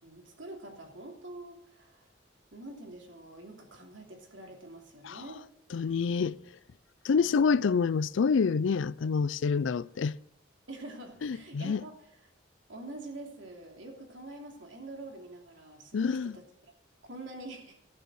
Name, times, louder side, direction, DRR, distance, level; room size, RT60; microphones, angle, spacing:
voice 1, 0.0-2.1 2.5-5.4 7.1-7.6 10.7-11.9 12.7-16.7 17.0-17.8, right 2 dB, 80° right, 2.9 m, -46 dB
voice 2, 5.7-6.4 7.0-10.2 11.2-11.8 15.9-16.4, left 5 dB, 75° left, 0.4 m, -27 dB
12.0 x 9.3 x 6.4 m
head